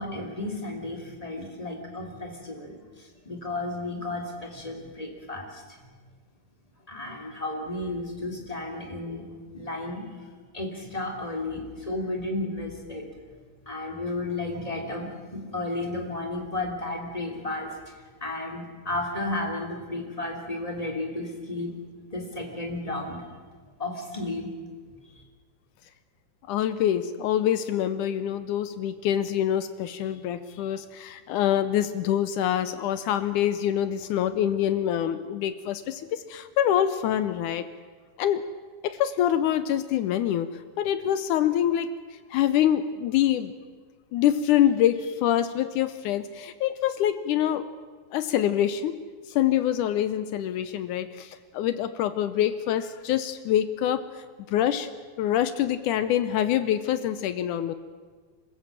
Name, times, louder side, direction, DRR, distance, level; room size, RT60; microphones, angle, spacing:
voice 1, 0.0-5.9 6.9-9.3 9.5-10.1 10.5-17.7 18.2-21.7 22.1-24.5 24.9-25.2, left 2 dB, 10° left, 1 dB, 2.6 m, -33 dB
voice 2, 26.5-37.7 38.2-38.4 38.8-43.5 44.1-47.7 48.1-49.0 49.3-54.2 54.5-54.9 55.2-57.7, left 11 dB, 75° left, 12 dB, 1.9 m, -25 dB
26.5 x 15.5 x 7.5 m, 1.5 s
omnidirectional pair, 4.2 m